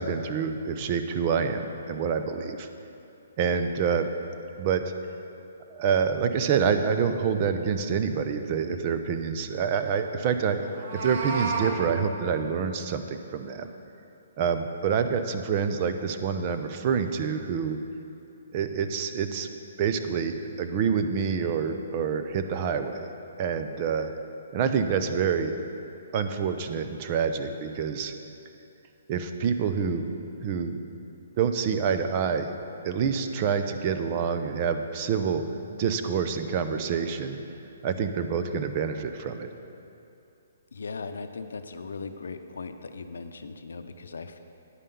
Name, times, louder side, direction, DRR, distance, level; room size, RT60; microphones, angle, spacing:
voice 1, 0.0-2.7 3.4-4.1 4.6-4.9 5.7-13.7 14.4-17.8 18.5-19.5 19.8-23.1 23.4-24.1 24.5-25.6 26.1-28.1 29.1-30.1 30.4-30.8 31.1-32.5 32.8-35.4 35.8-37.4 37.8-39.5, right 6 dB, 35° right, 7 dB, 0.6 m, -27 dB
Meow, 10.6-11.7, right 4 dB, 55° right, 1.1 m, -31 dB
voice 2, 40.7-44.4, left 4 dB, 85° left, 8 dB, 0.6 m, -38 dB
9.9 x 5.5 x 6.8 m, 2.7 s
hypercardioid pair, 150°, 0 cm